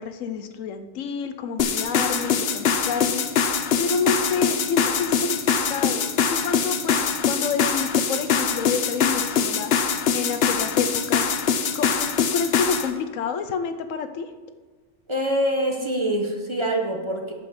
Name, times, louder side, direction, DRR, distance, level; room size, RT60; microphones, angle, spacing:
voice 1, 0.0-11.3 11.7-14.3, left 5 dB, 85° left, 9 dB, 1.1 m, -29 dB
sound 1, 1.6-12.9, left 6 dB, 60° left, 0.9 m, -23 dB
voice 2, 15.1-17.3, equal, 25° right, 2 dB, 0.9 m, -25 dB
9.9 x 5.2 x 6.9 m, 1.4 s
omnidirectional pair, 1.3 m